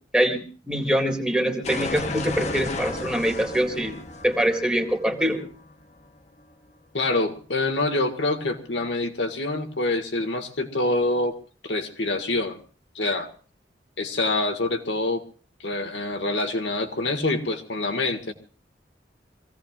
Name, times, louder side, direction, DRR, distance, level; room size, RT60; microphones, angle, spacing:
voice 1, 0.1-3.9 4.2-5.4, equal, 5° right, 2.1 m, -24 dB
sound 1, 1.6-6.4, left 3 dB, 40° left, 1.1 m, -34 dB
voice 2, 6.9-11.4 11.6-12.6 13.0-13.3 14.0-15.2 15.6-18.3, left 2 dB, 75° left, 2.0 m, -26 dB
25.5 x 17.0 x 2.5 m
head